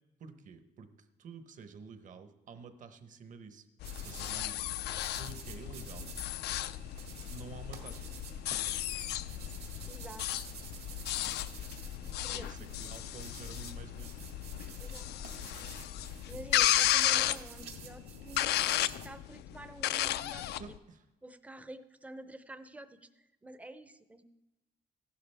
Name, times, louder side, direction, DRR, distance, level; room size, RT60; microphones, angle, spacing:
voice 1, 0.2-3.7 4.0-4.7 5.1-6.1 7.3-8.1 12.3-14.1 20.6-21.0, right 5 dB, 50° right, 10 dB, 0.9 m, -49 dB
sound 1, 3.8-20.8, left 13 dB, 80° left, 0.4 m, -34 dB
sound 2, 3.8-19.1, right 6 dB, 75° right, 1.9 m, -50 dB
voice 2, 9.8-10.5 12.2-12.6 14.8-15.1 16.3-20.6 21.2-24.2, right 1 dB, 10° right, 12 dB, 0.5 m, -49 dB
15.0 x 11.5 x 3.4 m, 1.1 s
cardioid pair, 125°, 17 cm